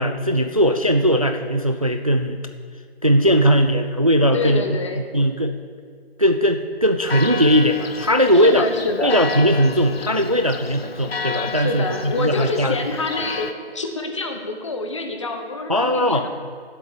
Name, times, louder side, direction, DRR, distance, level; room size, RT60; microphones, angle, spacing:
voice 1, 0.0-2.4 3.0-4.6 5.1-5.6 6.2-8.7 9.0-12.8 15.7-16.3, equal, 35° right, 7 dB, 0.4 m, -19 dB
voice 2, 4.3-5.1 8.3-9.2 11.5-16.3, left 3 dB, 30° left, 4 dB, 0.9 m, -27 dB
Church bell, 7.0-13.5, left 5 dB, 65° left, 0.8 m, -32 dB
11.5 x 7.9 x 7.1 m, 2.1 s
figure-of-eight pair, 160°, 32 cm